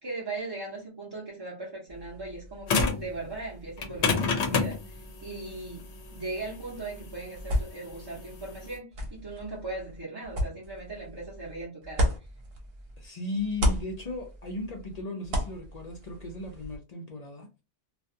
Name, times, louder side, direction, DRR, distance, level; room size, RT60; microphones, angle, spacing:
voice 1, 0.0-12.1, right 3 dB, 25° right, -5 dB, 0.6 m, -39 dB
sound 1, 1.9-13.1 13.4-16.8, equal, 65° right, 1.0 m, -35 dB
sound 2, 2.7-3.1 3.8-8.7, left 5 dB, 75° left, 0.9 m, -28 dB
voice 2, 13.0-17.6, left 2 dB, 50° left, 2 dB, 0.5 m, -36 dB
2.4 x 2.2 x 2.6 m, 0.28 s
omnidirectional pair, 1.1 m